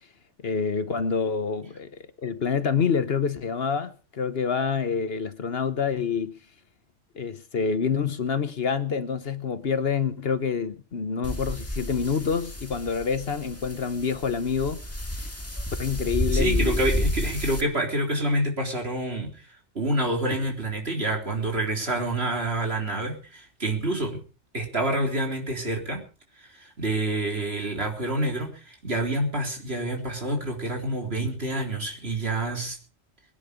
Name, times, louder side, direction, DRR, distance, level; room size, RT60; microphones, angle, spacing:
voice 1, 0.4-1.9 2.2-6.4 7.1-14.8 15.8-16.9, left 6 dB, 60° left, 1.2 m, -27 dB
sound 1, 11.2-17.6, left 1 dB, 10° left, 1.7 m, -30 dB
voice 2, 16.3-24.2 24.5-26.0 26.4-32.8, right 1 dB, 60° right, 4.0 m, -28 dB
22.5 x 10.0 x 5.1 m
omnidirectional pair, 1.2 m